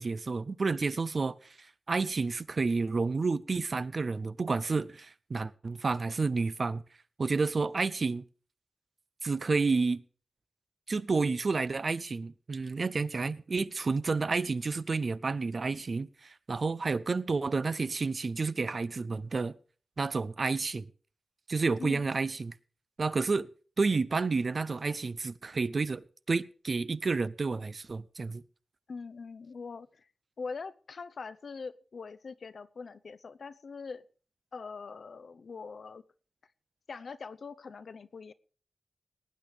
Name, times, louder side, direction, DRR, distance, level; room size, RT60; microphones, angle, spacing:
voice 1, 0.0-6.8 7.2-8.2 9.2-10.0 10.9-19.5 20.0-20.9 21.5-22.5 23.0-23.5 23.8-28.4, right 4 dB, 55° right, 0.7 m, -30 dB
voice 2, 28.9-30.1 30.4-34.0 34.5-36.0 36.9-38.3, left 4 dB, 70° left, 0.7 m, -42 dB
18.5 x 8.9 x 5.1 m
cardioid pair, 50°, 0 cm